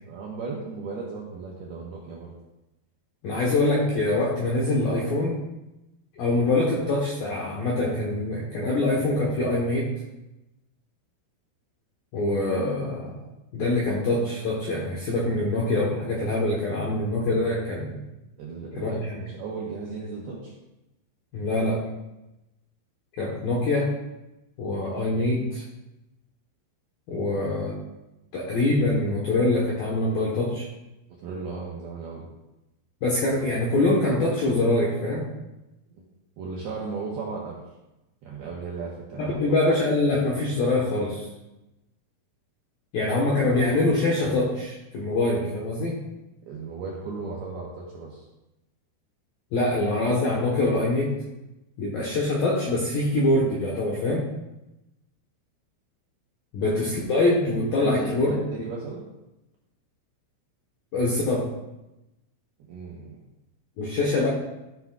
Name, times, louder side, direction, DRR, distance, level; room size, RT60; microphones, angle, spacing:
voice 1, 0.0-2.3 18.4-20.5 31.2-32.3 36.0-36.1 36.4-37.6 38.2-39.4 46.5-48.3 57.8-59.1 62.7-63.2, right 4 dB, 75° right, -3 dB, 2.4 m, -35 dB
voice 2, 3.2-5.4 6.2-9.9 12.1-13.1 13.5-18.0 18.8-19.1 21.3-21.8 23.2-23.9 24.6-25.6 27.1-27.8 28.3-30.7 33.0-35.3 39.2-41.3 42.9-46.0 49.5-51.1 51.8-54.3 56.5-58.3 60.9-61.5 63.8-64.3, left 2 dB, 75° left, -4 dB, 2.1 m, -24 dB
14.0 x 8.1 x 2.4 m, 0.97 s
omnidirectional pair, 6.0 m